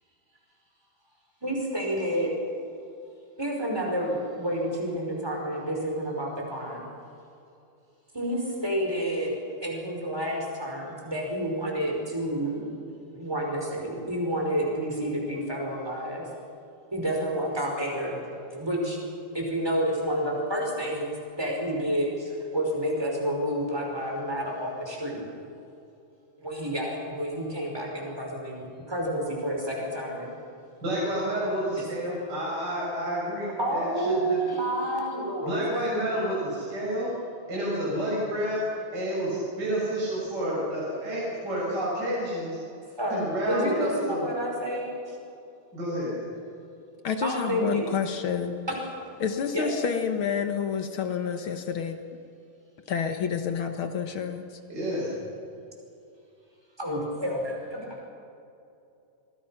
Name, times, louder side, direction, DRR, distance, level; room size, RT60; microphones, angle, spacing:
voice 1, 1.4-2.3 3.4-6.8 8.1-12.7 13.1-16.3 16.9-18.2 18.5-19.0 19.3-25.3 26.4-30.3 31.7-31.9 33.6-35.7 43.0-45.2 47.2-47.9 48.7-48.8 49.5-49.7 56.8-57.9, right 1 dB, 5° right, 0 dB, 5.1 m, -29 dB
voice 2, 30.8-34.4 35.4-37.1 37.5-38.6 38.9-42.6 43.1-44.3 45.7-46.2 54.7-55.2, right 1 dB, 30° right, -7 dB, 7.0 m, -29 dB
voice 3, 47.0-48.6 49.2-52.0 52.9-54.5, left 7 dB, 60° left, 7 dB, 1.4 m, -29 dB
28.0 x 22.0 x 5.9 m, 2.7 s
omnidirectional pair, 3.8 m